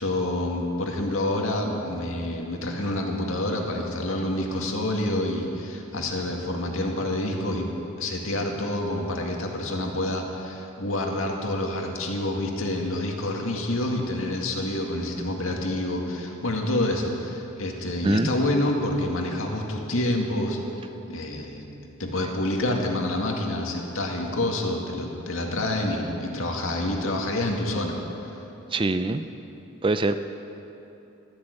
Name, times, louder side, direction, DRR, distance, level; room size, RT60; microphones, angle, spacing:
voice 1, 0.0-7.7 8.0-20.6 21.1-21.6 22.0-28.0 28.2-28.3, left 1 dB, 70° left, 1 dB, 2.1 m, -27 dB
voice 2, 28.7-29.3 29.8-30.2, right 2 dB, 25° right, 10 dB, 0.4 m, -23 dB
13.5 x 13.0 x 8.2 m, 3.0 s
head